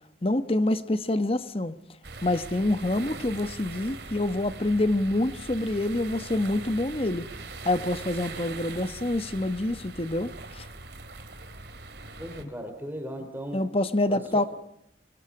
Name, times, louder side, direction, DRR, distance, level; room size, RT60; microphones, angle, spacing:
voice 1, 0.2-1.7 2.2-7.3 7.6-10.7 12.4-12.5 13.5-14.4, left 1 dB, 30° left, 1.1 m, -26 dB
sound 1, 2.0-12.4, right 3 dB, 60° right, 2.6 m, -41 dB
voice 2, 12.2-13.7 14.1-14.5, equal, 10° right, 3.2 m, -37 dB
25.5 x 21.5 x 4.9 m
head